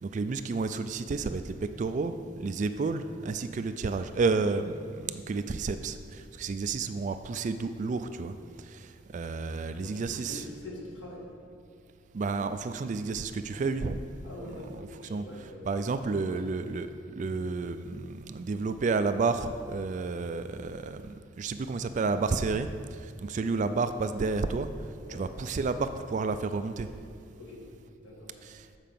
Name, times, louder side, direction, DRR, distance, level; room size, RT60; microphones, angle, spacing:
voice 1, 0.0-8.4 8.6-10.5 12.1-14.0 14.4-16.9 17.2-24.7 25.1-26.9 28.4-28.7, right 4 dB, 40° right, 10 dB, 0.3 m, -31 dB
voice 2, 9.8-11.3 14.2-16.4 25.0-25.2 27.3-27.6 28.0-28.3, left 1 dB, 70° left, -4 dB, 2.2 m, -44 dB
7.6 x 4.9 x 6.8 m, 2.3 s
head